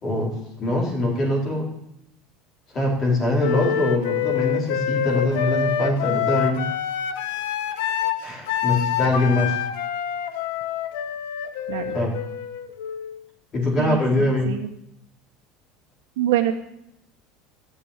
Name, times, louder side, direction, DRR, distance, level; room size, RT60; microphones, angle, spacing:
voice 1, 0.0-1.7 2.7-6.6 8.2-9.6 11.9-12.1 13.5-14.5, left 1 dB, 30° left, -2 dB, 3.9 m, -23 dB
Wind instrument woodwind instrument, 3.4-13.2, left 9 dB, 80° left, 1.2 m, -26 dB
voice 2, 13.8-14.7 16.2-16.5, right 12 dB, 85° right, 0 dB, 1.3 m, -25 dB
12.5 x 7.1 x 9.7 m, 0.81 s
supercardioid pair, 145°, 0 cm